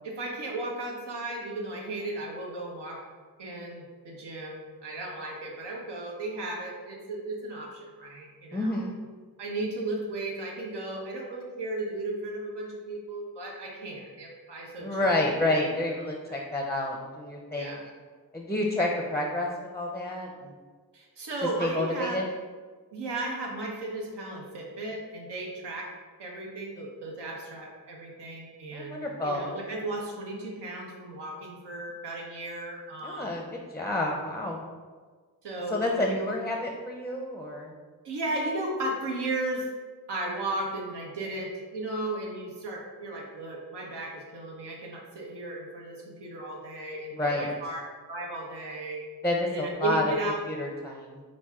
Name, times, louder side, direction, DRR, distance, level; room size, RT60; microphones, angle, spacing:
voice 1, 0.0-3.0 3.4-8.8 9.4-15.2 16.3-16.5 17.5-17.8 20.9-22.2 22.9-25.9 26.2-29.0 29.2-33.4 35.4-36.3 38.0-39.6 40.1-47.8 48.1-49.0 49.4-50.4, right 2 dB, 90° right, -1 dB, 0.9 m, -35 dB
voice 2, 8.5-9.0 14.8-17.8 18.3-20.5 21.6-22.3 28.7-29.5 33.0-34.6 35.7-37.7 47.1-47.5 49.2-50.0 50.5-51.2, left 1 dB, 5° left, 0 dB, 0.5 m, -29 dB
6.0 x 2.5 x 3.5 m, 1.5 s
cardioid pair, 80°, 40 cm